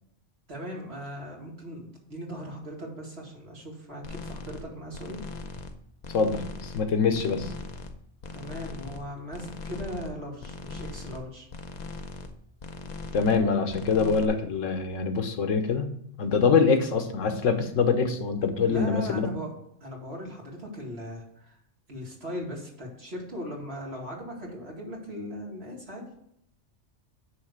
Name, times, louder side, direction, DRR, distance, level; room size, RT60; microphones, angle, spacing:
voice 1, 0.5-5.2 8.3-11.5 18.7-19.5 19.8-21.6 21.9-26.0, equal, 55° right, -2 dB, 2.4 m, -38 dB
sound 1, 4.0-4.6 4.9-5.7 6.0-6.8 7.1-7.9 8.2-9.0 9.3-10.1 10.4-11.2 11.5-12.3 12.6-13.4 13.7-14.3, left 3 dB, 45° left, 0.7 m, -39 dB
voice 2, 6.1-7.5 13.1-15.9 16.2-19.2, left 5 dB, 85° left, 7 dB, 1.3 m, -24 dB
9.7 x 3.3 x 6.5 m, 0.72 s
omnidirectional pair, 1.3 m